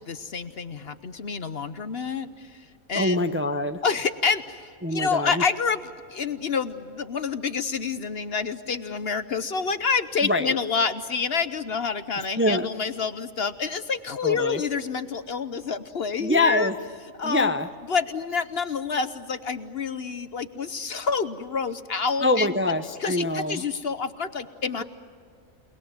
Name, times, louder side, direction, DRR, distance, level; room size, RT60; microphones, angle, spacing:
voice 1, 0.0-3.2 3.8-16.7 17.2-17.5 17.9-22.5 23.0-24.8, left 5 dB, 50° left, 12 dB, 1.0 m, -28 dB
voice 2, 2.9-3.8 4.8-5.4 10.2-10.6 12.4-12.7 14.2-14.6 16.2-16.8 17.2-17.7 22.2-23.6, left 2 dB, 10° right, 8 dB, 0.6 m, -24 dB
29.0 x 20.0 x 9.4 m, 2.1 s
omnidirectional pair, 1.5 m